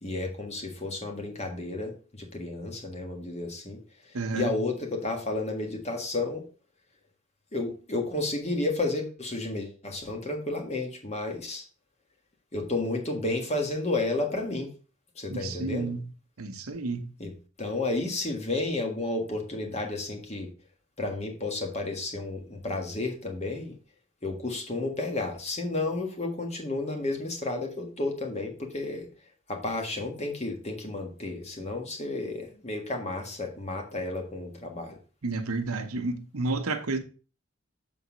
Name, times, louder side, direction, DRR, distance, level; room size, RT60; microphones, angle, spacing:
voice 1, 0.0-6.4 7.5-11.6 12.5-14.7 15.1-15.9 17.2-17.3 17.6-20.5 21.0-23.7 24.2-29.1 29.5-35.0, left 2 dB, 30° left, 1.6 m, -32 dB
voice 2, 4.1-4.6 15.3-16.1 16.4-17.1 35.2-37.0, right 3 dB, 85° right, 1.0 m, -31 dB
7.2 x 4.2 x 5.1 m
head